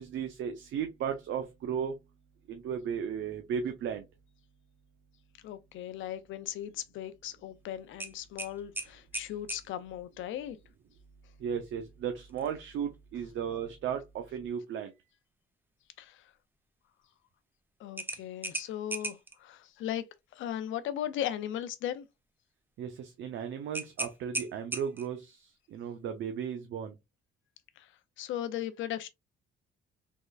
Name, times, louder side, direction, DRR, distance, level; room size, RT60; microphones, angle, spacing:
voice 1, 0.0-2.0 2.5-4.0 11.4-14.9 22.8-25.4 25.7-26.9, right 8 dB, 75° right, 0.6 m, -35 dB
voice 2, 5.4-10.6 16.0-16.3 17.8-20.0 20.3-22.1 27.8-27.9 28.2-29.1, left 11 dB, 80° left, 0.4 m, -37 dB
sound 1, 8.0-9.7 12.3-12.5 12.9-13.0 18.0-19.4 23.7-25.2, right 1 dB, 10° right, 0.6 m, -37 dB
3.6 x 3.1 x 2.3 m
cardioid pair, 90°, 20 cm